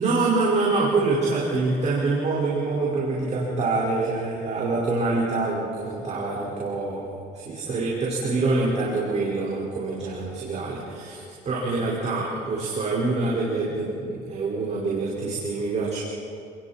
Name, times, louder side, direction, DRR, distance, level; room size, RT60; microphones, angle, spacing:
voice 1, 0.0-16.0, right 3 dB, 45° right, -6 dB, 5.2 m, -25 dB
29.5 x 21.0 x 4.4 m, 2.5 s
cardioid pair, 110°, 17 cm